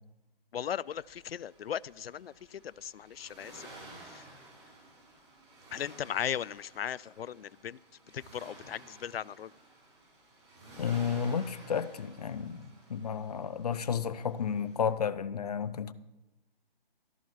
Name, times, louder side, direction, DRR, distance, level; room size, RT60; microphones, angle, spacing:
voice 1, 0.5-3.7 4.0-4.2 5.7-7.8 8.1-9.5, left 9 dB, 85° left, 0.5 m, -37 dB
Accelerating revving vroom, 0.8-14.9, right 2 dB, 30° right, 6.7 m, -54 dB
voice 2, 10.8-15.9, left 7 dB, 40° left, 0.7 m, -32 dB
14.0 x 13.5 x 4.6 m
hypercardioid pair, 160°, 29 cm